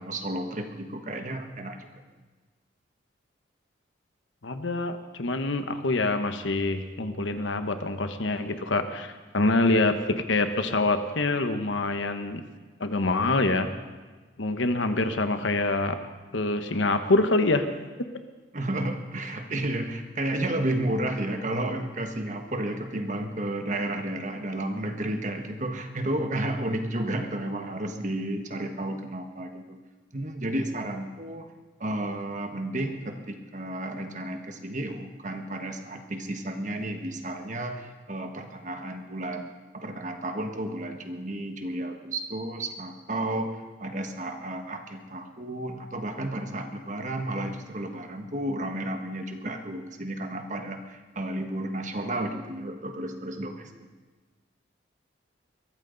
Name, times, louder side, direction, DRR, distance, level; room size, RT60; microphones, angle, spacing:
voice 1, 0.0-1.9 18.5-29.8 30.1-31.5 31.8-53.7, right 1 dB, 40° right, 5 dB, 1.4 m, -32 dB
voice 2, 4.4-12.4 12.8-13.7 14.4-16.0 16.3-17.6, left 2 dB, 75° left, 8 dB, 1.2 m, -25 dB
22.5 x 14.0 x 4.0 m, 1.3 s
head